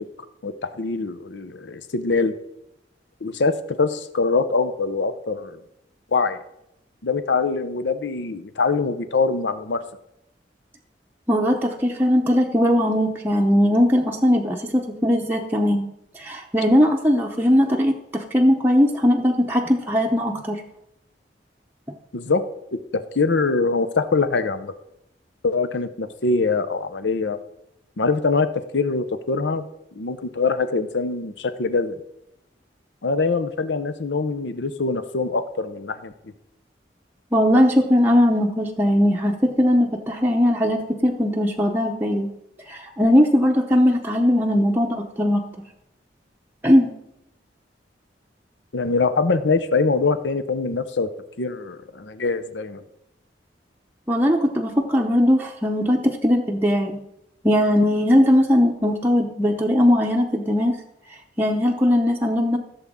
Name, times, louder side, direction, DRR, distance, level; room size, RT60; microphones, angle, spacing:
voice 1, 0.4-2.4 3.2-5.6 6.1-6.4 7.0-9.8 22.1-22.4 22.7-24.7 25.4-27.4 28.0-28.5 28.7-29.6 29.9-31.9 33.0-36.1 48.7-51.1 51.4-52.8, left 4 dB, 80° left, 11 dB, 0.7 m, -23 dB
voice 2, 11.3-15.9 16.1-20.6 37.3-42.3 42.7-45.4 46.6-46.9 54.1-57.0 57.4-60.8 61.4-62.6, equal, 10° right, -1 dB, 0.7 m, -19 dB
15.5 x 7.1 x 3.6 m, 0.84 s
head